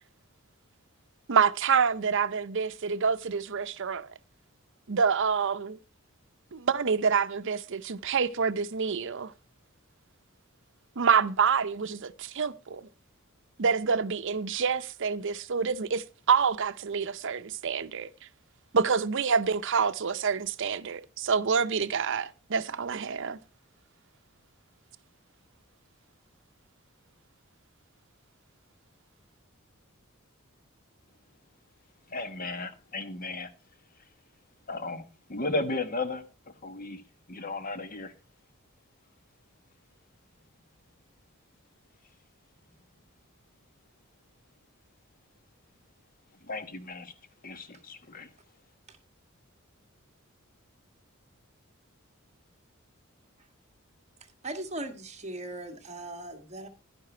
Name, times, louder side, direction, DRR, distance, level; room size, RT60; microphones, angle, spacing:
voice 1, 1.3-4.1 4.9-5.8 6.5-9.3 11.0-12.9 13.6-18.1 18.7-23.4, right 6 dB, 65° right, 0.7 m, -27 dB
voice 2, 32.1-33.5 34.7-35.0 35.3-36.2 36.6-37.0 37.3-38.1 46.5-47.1 47.4-48.3, left 2 dB, 45° left, 1.4 m, -34 dB
voice 3, 54.4-56.7, right 2 dB, 35° right, 1.7 m, -38 dB
12.0 x 10.0 x 4.4 m
head